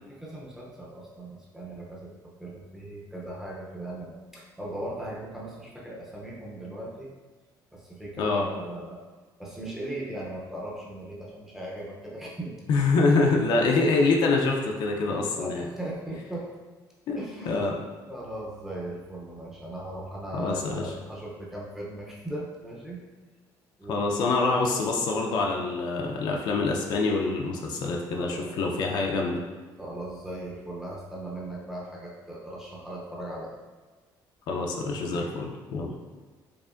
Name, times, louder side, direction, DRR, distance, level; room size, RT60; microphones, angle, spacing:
voice 1, 0.1-7.1 7.7-9.0 9.4-12.6 15.4-16.5 17.2-17.6 18.1-23.0 23.8-24.1 28.1-28.7 29.8-33.5, right 1 dB, 5° right, -4 dB, 0.6 m, -38 dB
voice 2, 12.7-15.6 17.1-17.2 17.5-17.8 20.3-20.8 23.9-29.4 34.5-35.9, left 3 dB, 65° left, 0 dB, 0.5 m, -25 dB
4.7 x 2.6 x 2.5 m, 1.3 s
cardioid pair, 160°, 8 cm